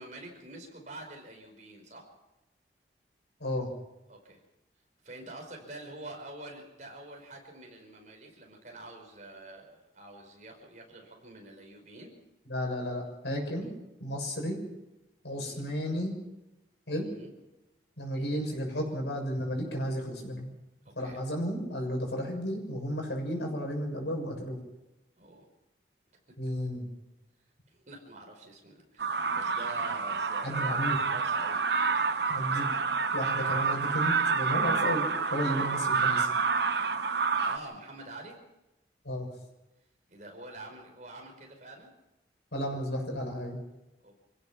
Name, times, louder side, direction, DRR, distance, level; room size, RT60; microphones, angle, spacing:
voice 1, 0.0-2.1 4.1-4.4 5.0-12.1 13.6-13.7 15.4-15.7 17.0-17.3 18.1-18.4 21.0-21.2 25.2-25.5 27.7-31.6 35.4-35.7 37.4-38.4 40.1-41.9 44.0-44.1, right 2 dB, 45° right, 2 dB, 5.1 m, -47 dB
voice 2, 12.5-13.7 14.0-14.6 15.2-16.2 16.9-17.1 18.0-20.5 21.0-24.6 26.4-26.9 30.4-31.0 32.3-32.7 33.1-36.3 39.0-39.3 42.5-43.6, equal, 90° left, 2 dB, 6.9 m, -33 dB
sound 1, 29.0-37.6, right 5 dB, 70° right, 1.0 m, -28 dB
26.5 x 16.5 x 6.0 m, 0.97 s
head